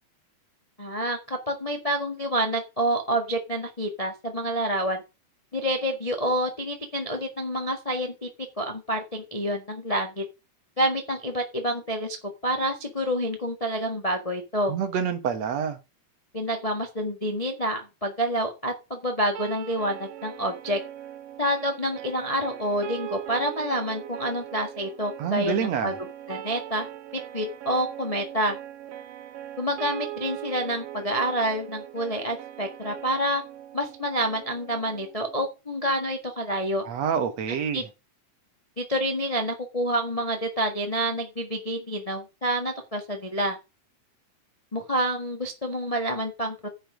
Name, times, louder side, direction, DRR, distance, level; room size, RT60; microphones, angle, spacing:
voice 1, 0.8-5.0 5.5-8.3 8.6-10.2 10.8-12.2 12.4-14.7 16.3-20.8 21.4-25.9 26.3-26.9 27.3-28.6 29.6-33.4 33.7-36.8 37.7-37.8 38.8-43.6 44.7-46.7, equal, 55° left, 0.4 m, -28 dB
voice 2, 14.7-15.8 25.2-25.9 36.9-37.8, right 7 dB, 60° right, 2.5 m, -27 dB
sound 1, 19.4-35.4, right 12 dB, 90° right, 2.8 m, -40 dB
10.0 x 6.0 x 6.2 m
omnidirectional pair, 3.7 m